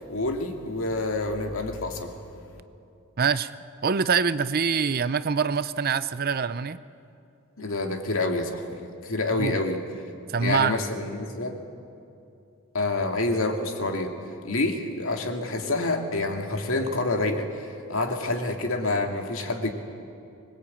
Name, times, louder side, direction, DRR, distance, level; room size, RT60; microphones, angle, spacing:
voice 1, 0.1-2.2 7.6-9.8 10.4-11.6 12.7-14.1 14.4-19.7, left 2 dB, 65° left, 4 dB, 2.4 m, -27 dB
voice 2, 3.2-3.5 3.8-6.8 9.3-9.6 10.3-10.8, right 6 dB, 45° right, 14 dB, 0.6 m, -25 dB
24.5 x 21.0 x 8.7 m, 2.6 s
head